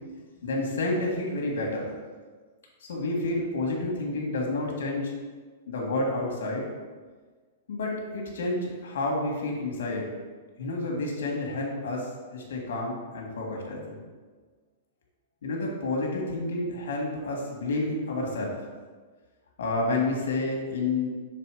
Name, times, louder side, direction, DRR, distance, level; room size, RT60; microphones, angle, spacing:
voice 1, 0.4-1.9 2.9-5.1 5.7-6.7 7.7-10.1 10.6-14.0 15.4-18.5 19.6-21.1, left 2 dB, 80° left, 0 dB, 1.7 m, -29 dB
6.0 x 3.8 x 4.8 m, 1.4 s
hypercardioid pair, 155°, 0 cm